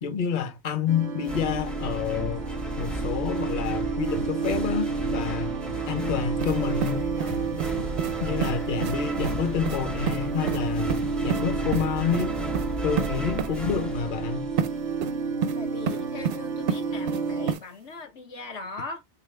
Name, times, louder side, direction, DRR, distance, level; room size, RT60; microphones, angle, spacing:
voice 1, 0.0-2.4 2.8-5.5 5.9-7.0 8.2-10.9 11.2-12.4 12.8-14.5, left 7 dB, 50° left, 0.8 m, -28 dB
sound 1, 0.9-17.5, right 5 dB, 60° right, 0.5 m, -31 dB
sound 2, 1.2-14.9, equal, ahead, 0.3 m, -34 dB
sound 3, 6.4-6.6 6.8-7.7 8.0-8.1 8.4-8.5 8.8-9.0 9.2-9.4 9.6-9.8 10.1-10.2 10.5-10.6 10.9-11.4 11.7-11.9 12.1-12.3 12.5-12.7 13.0-13.1 13.4-13.5 14.6-14.7 15.0-15.6 15.9-16.4 16.7-17.2 17.5-17.6, right 7 dB, 80° right, 0.9 m, -29 dB
voice 2, 15.6-19.0, left 3 dB, 85° left, 1.3 m, -39 dB
3.8 x 2.9 x 3.2 m
omnidirectional pair, 1.2 m